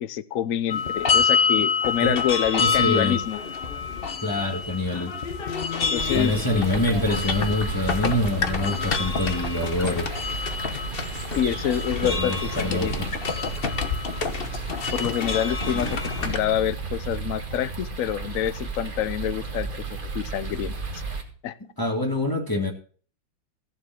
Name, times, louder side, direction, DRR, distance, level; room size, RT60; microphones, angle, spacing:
voice 1, 0.0-3.4 5.9-6.6 10.7-10.8 11.4-12.9 14.9-20.8 21.4-21.5, left 10 dB, 70° left, 17 dB, 0.8 m, -27 dB
sound 1, 0.7-16.4, left 5 dB, 40° left, 0.9 m, -27 dB
voice 2, 2.6-3.2 4.2-5.1 6.1-10.1 12.0-13.1 15.6-16.0 21.8-22.7, left 1 dB, 10° left, 3 dB, 1.9 m, -26 dB
sound 2, 6.0-21.2, right 4 dB, 25° right, 1.8 m, -33 dB
15.0 x 7.2 x 5.9 m, 0.42 s
omnidirectional pair, 2.2 m